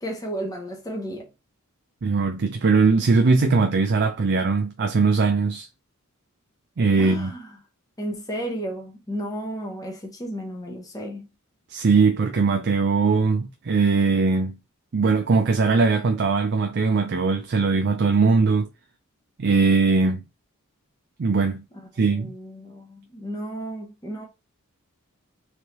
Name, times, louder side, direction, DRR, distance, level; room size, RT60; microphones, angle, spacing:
voice 1, 0.0-1.3 7.0-7.5 8.0-11.3 22.0-24.2, equal, 15° left, 0.8 m, -33 dB
voice 2, 2.0-5.7 6.8-7.3 11.7-14.6 14.9-18.7 19.4-20.2 21.2-21.6 22.0-22.3, right 4 dB, 50° right, 0.5 m, -20 dB
3.5 x 3.3 x 3.0 m
head